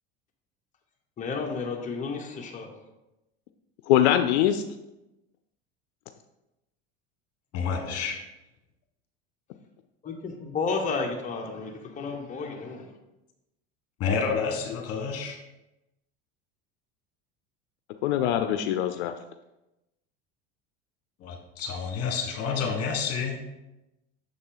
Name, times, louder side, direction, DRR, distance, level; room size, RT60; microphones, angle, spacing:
voice 1, 1.2-2.7 7.6-8.0 10.0-12.9, left 4 dB, 25° left, 1 dB, 0.9 m, -32 dB
voice 2, 3.9-4.6 18.0-19.1, left 11 dB, 85° left, 8 dB, 0.5 m, -22 dB
voice 3, 7.5-8.2 14.0-15.4 21.2-23.4, left 5 dB, 45° left, 3 dB, 1.5 m, -29 dB
6.7 x 3.9 x 3.8 m, 0.96 s
supercardioid pair, 110°, 33 cm